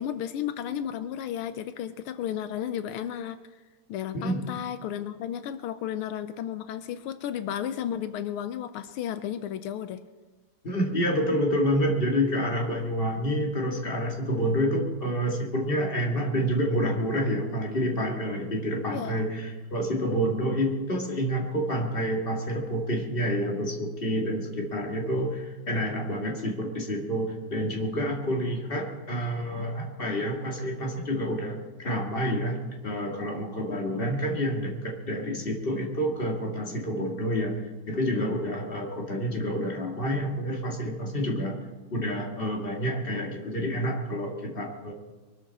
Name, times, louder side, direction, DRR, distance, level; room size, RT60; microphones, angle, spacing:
voice 1, 0.0-3.4 3.9-10.0 18.9-19.2, left 10 dB, 85° left, 11 dB, 1.6 m, -33 dB
voice 2, 10.6-41.6 41.9-44.9, equal, 25° left, 1 dB, 2.4 m, -28 dB
23.0 x 13.0 x 4.2 m, 1.3 s
omnidirectional pair, 2.3 m